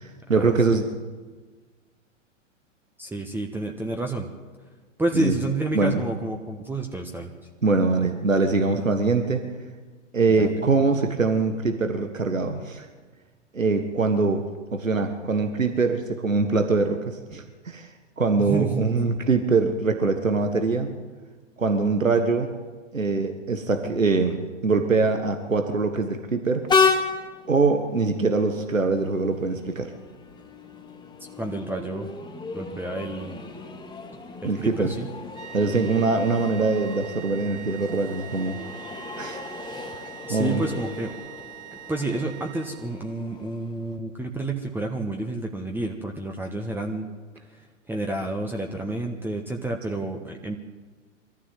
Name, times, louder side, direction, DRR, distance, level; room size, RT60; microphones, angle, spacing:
voice 1, 0.3-0.9 5.1-5.3 5.7-6.0 7.6-9.4 10.1-12.9 13.5-14.4 14.7-17.9 18.2-20.9 21.6-22.5 22.9-26.7 27.5-29.9 34.4-34.9 35.5-38.6 39.2-39.4 40.3-40.6, right 4 dB, 85° right, 6 dB, 1.7 m, -23 dB
voice 2, 3.0-4.3 5.0-7.3 10.4-10.7 18.4-18.8 31.4-32.1 32.5-33.3 34.4-35.1 40.2-41.1 41.9-47.1 47.5-50.6, right 2 dB, 5° right, 2 dB, 1.4 m, -29 dB
Train, 26.7-44.0, left 4 dB, 10° left, 2.1 m, -32 dB
sound 1, 35.3-43.2, right 14 dB, 65° right, 2.1 m, -43 dB
24.0 x 14.0 x 7.7 m, 1.4 s
figure-of-eight pair, 100°, 38 cm